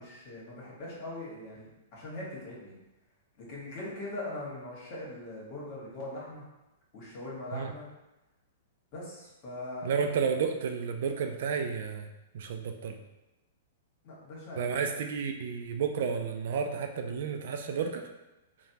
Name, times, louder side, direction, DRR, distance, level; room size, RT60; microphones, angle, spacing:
voice 1, 0.0-2.7 3.4-6.4 6.9-7.9 8.9-9.9 14.0-14.7, left 1 dB, 45° left, -5 dB, 1.3 m, -41 dB
voice 2, 9.8-12.1 12.3-13.0 14.6-18.0, right 6 dB, 60° right, 5 dB, 0.3 m, -31 dB
3.2 x 2.2 x 2.8 m, 0.98 s
hypercardioid pair, 115°, 0 cm